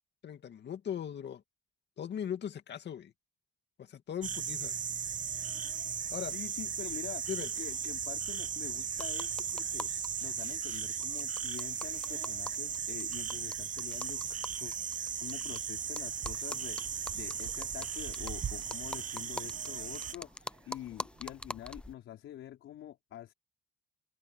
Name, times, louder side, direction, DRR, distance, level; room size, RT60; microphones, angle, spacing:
voice 1, 0.2-1.4 2.0-3.1 3.8-4.7 6.1-6.3 7.3-7.5, left 9 dB, 60° left, 2.2 m, -39 dB
sound 1, 4.2-20.1, right 7 dB, 40° right, 0.8 m, -37 dB
voice 2, 6.2-14.7 15.2-23.3, left 12 dB, 80° left, 4.9 m, -46 dB
sound 2, 6.8-21.3, right 12 dB, 75° right, 7.0 m, -67 dB
sound 3, 8.9-10.1 10.4-10.5 10.7-10.8 11.0-15.6 16.0-21.9, left 1 dB, 5° left, 0.6 m, -44 dB
open air
cardioid pair, 90°, 20 cm